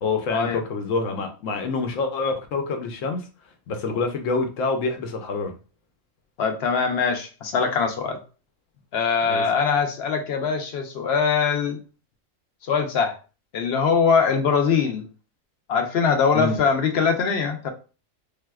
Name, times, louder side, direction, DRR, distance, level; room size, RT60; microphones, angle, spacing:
voice 1, 0.0-3.3 3.7-5.5 9.3-9.4 16.3-16.6, left 3 dB, 85° left, 5 dB, 1.0 m, -26 dB
voice 2, 6.4-8.2 8.9-11.8 12.7-13.2 13.5-15.1 15.7-17.7, left 5 dB, 60° left, 5 dB, 0.8 m, -22 dB
3.4 x 2.7 x 2.3 m, 0.34 s
omnidirectional pair, 1.3 m